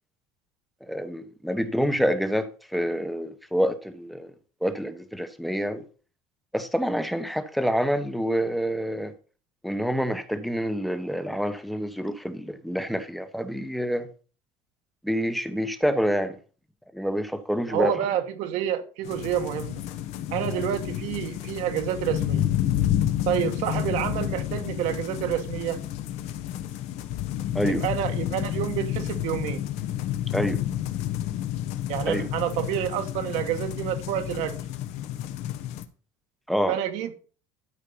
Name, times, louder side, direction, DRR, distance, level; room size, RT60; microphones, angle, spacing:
voice 1, 0.9-4.3 4.6-5.8 6.5-9.1 9.6-14.1 15.0-16.4 16.9-17.9 27.5-27.8 30.3-30.6 32.1-32.3 36.5-36.8, equal, ahead, 0.9 m, -27 dB
voice 2, 17.7-19.8 20.3-22.5 23.3-25.8 27.6-29.6 31.9-34.5 36.7-37.1, right 11 dB, 70° right, 1.4 m, -28 dB
sound 1, 19.0-35.9, left 12 dB, 65° left, 1.1 m, -30 dB
12.0 x 4.6 x 5.5 m
cardioid pair, 145°, 12 cm